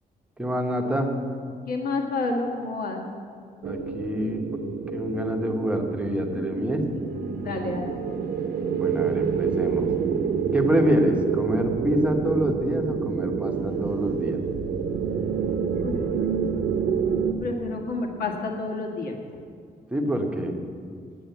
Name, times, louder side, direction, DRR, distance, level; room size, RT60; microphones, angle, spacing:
voice 1, 0.4-1.1 3.6-4.4 4.9-6.8 8.8-9.9 10.5-14.4 19.9-20.5, equal, 5° right, 3 dB, 1.1 m, -26 dB
voice 2, 1.7-3.0 7.4-7.9 10.6-10.9 15.8-16.1 17.4-19.2, left 3 dB, 65° left, 2 dB, 1.7 m, -29 dB
sound 1, 3.6-17.3, right 6 dB, 80° right, 0.9 m, -27 dB
8.8 x 7.8 x 9.2 m, 2.2 s
wide cardioid pair, 150°, 16 cm